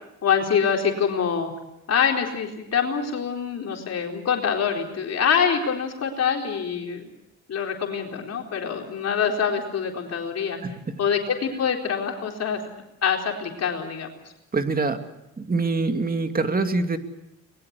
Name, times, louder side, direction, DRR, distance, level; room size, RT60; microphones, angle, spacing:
voice 1, 0.2-1.5 1.9-7.1 7.5-10.6 11.0-12.6 13.0-14.1, left 7 dB, 55° left, 2 dB, 4.1 m, -25 dB
voice 2, 14.5-15.0 15.4-17.0, right 3 dB, 30° right, 7 dB, 2.5 m, -24 dB
24.0 x 20.5 x 8.3 m, 0.87 s
cardioid pair, 90°, 30 cm